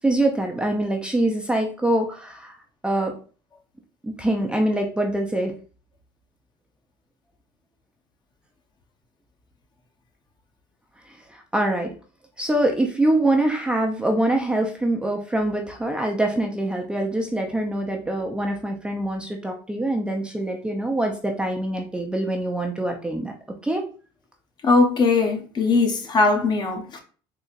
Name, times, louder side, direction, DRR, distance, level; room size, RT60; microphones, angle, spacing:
voice 1, 0.0-2.6 2.8-3.2 4.0-5.5 11.1-11.9 12.4-23.3 23.6-23.8, right 1 dB, 10° right, 0.4 m, -24 dB
voice 2, 24.6-27.0, left 3 dB, 35° left, 0.8 m, -20 dB
3.9 x 2.7 x 2.4 m
supercardioid pair, 115°, 12 cm